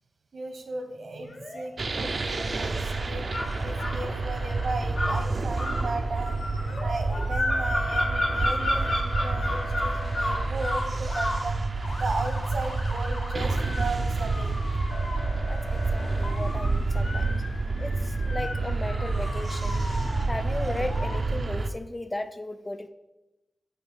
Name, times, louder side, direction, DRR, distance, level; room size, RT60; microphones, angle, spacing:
voice 1, 0.3-3.2 3.6-6.4 6.8-11.6 12.0-14.5 20.4-20.5, right 3 dB, 80° right, 5 dB, 1.0 m, -36 dB
Motor vehicle (road) / Siren, 1.2-2.2 2.5-3.0 3.4-4.7 6.6-7.2 7.5-10.5 10.9-11.4 11.8-21.2, left 2 dB, 70° left, 1.0 m, -40 dB
sound 1, 1.8-21.7, right 3 dB, 50° right, 0.4 m, -29 dB
sound 2, 3.3-4.0 4.9-11.5, left 1 dB, 85° left, 1.7 m, -29 dB
voice 2, 15.5-17.3 17.8-19.8 20.3-22.9, left 2 dB, 20° left, 10 dB, 0.4 m, -35 dB
7.9 x 2.7 x 5.5 m, 0.98 s
wide cardioid pair, 115°, 0 cm